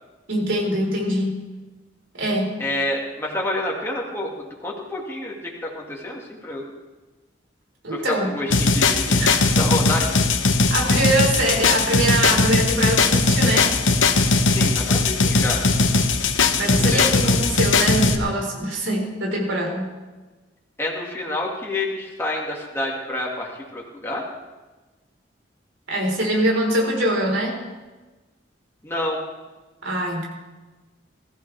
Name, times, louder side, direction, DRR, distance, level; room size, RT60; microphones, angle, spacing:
voice 1, 0.3-1.4 2.1-2.6 7.8-8.3 9.2-9.4 10.7-13.7 16.6-19.9 25.9-27.6 29.8-30.2, right 1 dB, 85° right, -1 dB, 4.5 m, -23 dB
voice 2, 2.6-5.4 5.6-6.7 7.9-10.2 14.5-15.6 16.7-17.3 20.8-24.2 28.8-29.2, left 1 dB, 15° left, -3 dB, 2.2 m, -28 dB
sound 1, 8.5-18.2, left 3 dB, 90° left, 1.1 m, -19 dB
21.5 x 14.5 x 3.5 m, 1.2 s
head